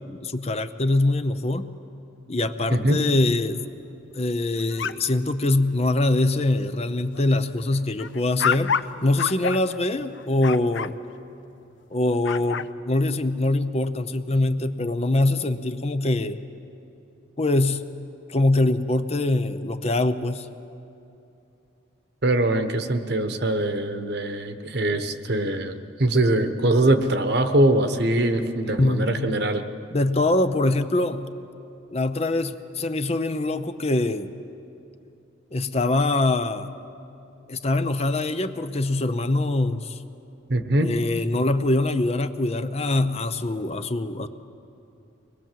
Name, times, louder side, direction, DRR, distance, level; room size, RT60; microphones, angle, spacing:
voice 1, 0.0-1.7 2.3-3.6 4.1-8.7 9.0-11.0 11.9-16.4 17.4-17.8 18.3-20.5 28.8-29.4 29.9-31.3 31.9-34.3 35.5-36.7 37.5-40.0 40.8-44.3, left 2 dB, 30° left, 10 dB, 0.7 m, -23 dB
voice 2, 2.7-3.0 22.2-29.6 40.5-40.9, right 1 dB, 55° right, 8 dB, 1.2 m, -22 dB
sound 1, 4.6-5.4 5.8-6.0 6.4-6.7 7.1-10.9 12.1-12.7, left 6 dB, 70° left, 0.6 m, -29 dB
24.5 x 20.5 x 7.6 m, 2.8 s
head